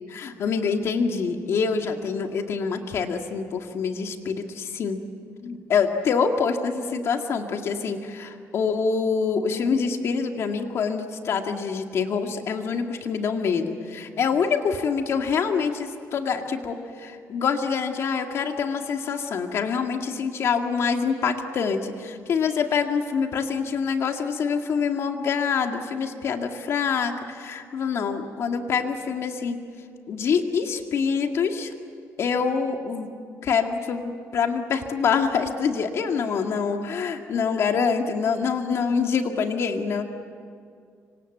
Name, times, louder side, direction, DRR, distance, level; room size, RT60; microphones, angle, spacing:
voice 1, 0.1-5.0 5.4-29.6 30.1-31.7 32.2-33.1 33.4-40.0, left 5 dB, 55° left, 4 dB, 2.2 m, -25 dB
26.5 x 25.5 x 8.0 m, 2.3 s
cardioid pair, 160°, 6 cm